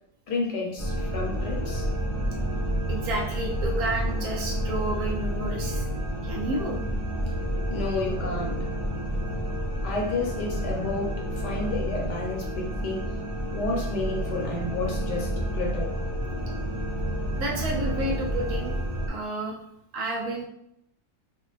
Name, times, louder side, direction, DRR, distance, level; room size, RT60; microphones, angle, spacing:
voice 1, 0.3-1.9 7.7-8.6 9.8-13.1 13.5-15.9, left 3 dB, 65° left, 0 dB, 1.4 m, -31 dB
sound 1, 0.8-19.1, right 1 dB, 25° left, 0.7 m, -30 dB
voice 2, 2.9-5.8 6.2-6.8 17.4-18.7 19.1-19.6 19.9-20.4, right 1 dB, 55° right, -3 dB, 1.3 m, -31 dB
5.4 x 2.2 x 3.3 m, 0.75 s
omnidirectional pair, 2.1 m